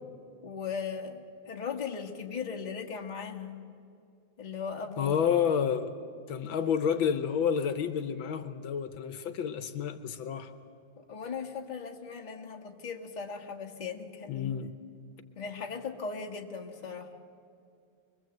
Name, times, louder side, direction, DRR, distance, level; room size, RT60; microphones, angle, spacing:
voice 1, 0.4-3.6 4.4-5.2 11.0-14.7 15.3-17.1, left 5 dB, 25° left, 2 dB, 1.3 m, -38 dB
voice 2, 5.0-5.9 6.3-10.5 14.3-14.7, left 7 dB, 75° left, 10 dB, 1.7 m, -29 dB
24.5 x 22.5 x 7.9 m, 2.4 s
omnidirectional pair, 2.2 m